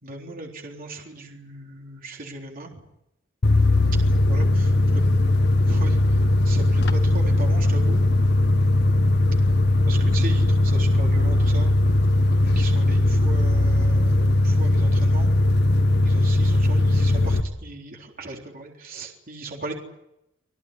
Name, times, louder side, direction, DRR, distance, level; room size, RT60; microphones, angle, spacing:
voice 1, 0.0-2.7 4.1-4.7 5.7-6.0 6.5-8.0 9.9-11.7 12.4-15.3 16.0-19.7, right 2 dB, 45° right, 1 dB, 3.8 m, -37 dB
sound 1, 3.4-17.4, left 2 dB, 60° left, 1.3 m, -19 dB
27.0 x 17.5 x 9.9 m, 0.84 s
head